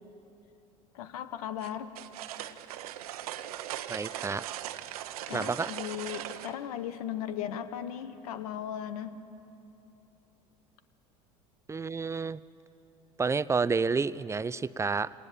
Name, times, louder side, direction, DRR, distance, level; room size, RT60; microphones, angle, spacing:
voice 1, 0.9-1.9 5.3-9.2, left 10 dB, 75° left, 12 dB, 1.1 m, -37 dB
sound 1, 1.6-6.6, right 12 dB, 80° right, 0.8 m, -39 dB
voice 2, 3.9-4.4 5.3-5.7 11.7-12.4 13.2-15.1, right 4 dB, 15° right, 17 dB, 0.5 m, -29 dB
26.0 x 18.5 x 7.4 m, 2.9 s
hypercardioid pair, 80°, 19 cm